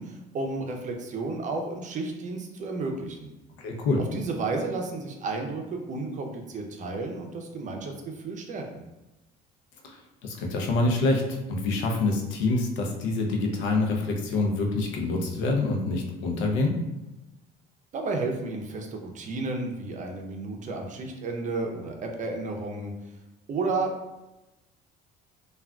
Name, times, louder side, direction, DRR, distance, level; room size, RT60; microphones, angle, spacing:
voice 1, 0.0-3.3 4.1-8.8 17.9-22.9 23.5-23.9, right 3 dB, 40° right, 2 dB, 0.6 m, -32 dB
voice 2, 3.6-4.0 9.8-16.8, left 2 dB, 80° left, 1 dB, 0.6 m, -26 dB
3.5 x 2.4 x 2.3 m, 1.0 s
cardioid pair, 105°, 20 cm